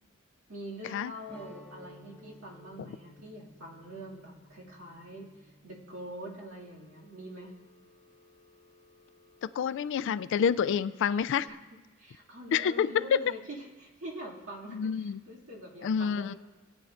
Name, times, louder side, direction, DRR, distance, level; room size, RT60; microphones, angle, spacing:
voice 1, 0.5-7.5 11.4-16.4, right 1 dB, 65° right, -4 dB, 2.3 m, -45 dB
sound 1, 1.3-6.1, equal, 10° left, 1.0 m, -54 dB
Telephone, 6.5-11.5, left 3 dB, 25° left, 1.2 m, -62 dB
voice 2, 9.6-11.5 12.5-13.2 14.7-15.2 15.8-16.3, left 7 dB, 60° left, 15 dB, 0.3 m, -28 dB
19.5 x 9.0 x 2.5 m, 1.3 s
head